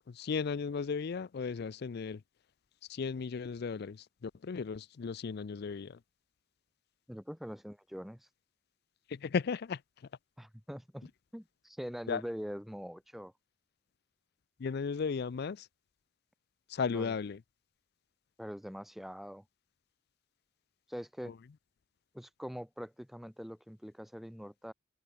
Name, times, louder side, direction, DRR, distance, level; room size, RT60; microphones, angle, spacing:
voice 1, 0.1-2.2 2.9-6.0 9.1-9.8 12.1-12.2 14.6-15.7 16.7-17.4, left 5 dB, 55° left, 0.4 m, -35 dB
voice 2, 7.1-8.3 10.4-13.3 16.9-17.1 18.4-19.4 20.9-21.4 22.1-24.7, equal, ahead, 0.6 m, -43 dB
head